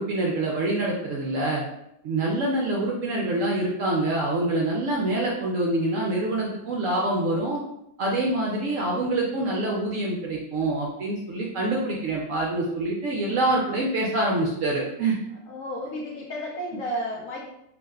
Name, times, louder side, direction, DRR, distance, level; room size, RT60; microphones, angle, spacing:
voice 1, 0.0-1.6 2.0-7.6 8.0-15.1, right 2 dB, 70° right, -2 dB, 0.8 m, -26 dB
voice 2, 15.5-17.5, equal, 65° left, -2 dB, 0.9 m, -32 dB
3.1 x 2.1 x 3.4 m, 0.79 s
omnidirectional pair, 1.8 m